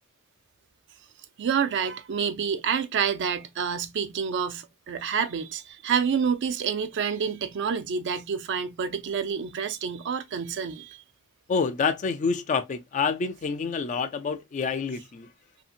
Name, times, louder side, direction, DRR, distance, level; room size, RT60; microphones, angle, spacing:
voice 1, 1.4-11.0, right 6 dB, 55° right, 0.4 m, -28 dB
voice 2, 11.5-15.3, left 5 dB, 35° left, 0.3 m, -27 dB
2.8 x 2.7 x 2.4 m
head